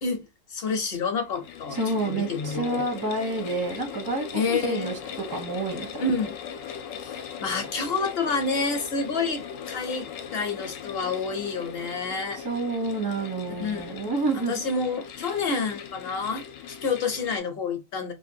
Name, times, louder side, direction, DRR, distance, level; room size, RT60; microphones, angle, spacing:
voice 1, 0.0-1.8 2.1-2.9 4.3-4.9 6.0-6.3 7.0-12.4 13.6-14.0 14.3-18.1, left 4 dB, 55° left, 0.9 m, -29 dB
sound 1, 1.2-17.4, left 7 dB, 75° left, 0.9 m, -39 dB
voice 2, 1.7-5.0 5.3-6.0 12.4-14.6, right 2 dB, 20° right, 0.5 m, -29 dB
3.1 x 2.4 x 2.7 m
omnidirectional pair, 1.4 m